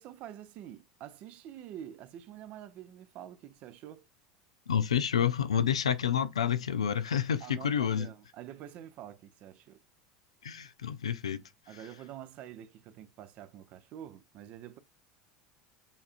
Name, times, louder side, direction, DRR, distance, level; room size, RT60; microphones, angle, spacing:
voice 1, 0.0-4.1 7.4-9.8 11.7-14.8, right 11 dB, 50° right, 0.7 m, -47 dB
voice 2, 4.7-8.1 10.4-11.4, left 8 dB, 85° left, 0.5 m, -29 dB
7.0 x 2.8 x 2.5 m
hypercardioid pair, 80°, 3 cm